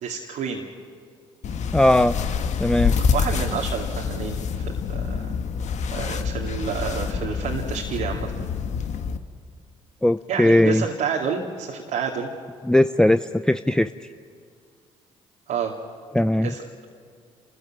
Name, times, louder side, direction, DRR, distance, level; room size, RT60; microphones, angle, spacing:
voice 1, 0.0-0.7 3.1-5.3 5.9-8.4 10.3-12.3 15.5-15.8 16.4-16.6, right 6 dB, 70° right, -1 dB, 2.3 m, -29 dB
sound 1, 1.4-9.2, left 6 dB, 60° left, 1.4 m, -26 dB
voice 2, 1.7-2.2 2.6-3.0 10.0-10.8 12.6-13.9 16.1-16.5, left 1 dB, 5° left, 11 dB, 0.6 m, -18 dB
30.0 x 14.5 x 8.8 m, 2.2 s
supercardioid pair, 60°, 14 cm